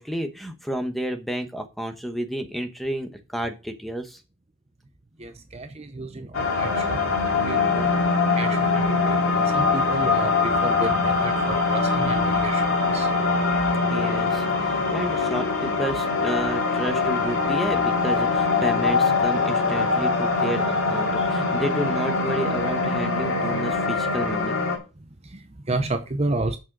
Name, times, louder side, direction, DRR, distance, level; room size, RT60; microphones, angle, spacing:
voice 1, 0.0-4.2 13.9-24.6, equal, ahead, 1.0 m, -31 dB
voice 2, 5.2-7.9 8.4-13.1 14.1-14.3 21.2-21.3 25.2-26.6, right 2 dB, 30° right, 0.7 m, -31 dB
sound 1, 6.3-24.8, left 4 dB, 70° left, 3.3 m, -23 dB
7.3 x 6.3 x 6.0 m
head